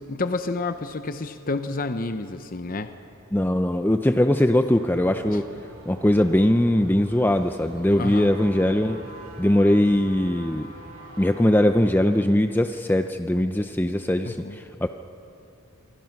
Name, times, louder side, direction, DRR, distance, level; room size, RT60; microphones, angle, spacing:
voice 1, 0.0-2.9 5.3-5.4 8.0-8.3 14.2-14.6, left 3 dB, 40° left, 9 dB, 0.8 m, -29 dB
voice 2, 3.3-5.5 5.9-9.0 9.4-10.7 11.2-14.9, left 1 dB, 10° left, 7 dB, 0.5 m, -21 dB
sound 1, 4.7-12.3, equal, 70° right, 3.9 m, -47 dB
sound 2, 8.0-11.6 12.2-12.3, right 2 dB, 35° right, 4.4 m, -45 dB
27.0 x 23.5 x 5.9 m, 2.7 s
head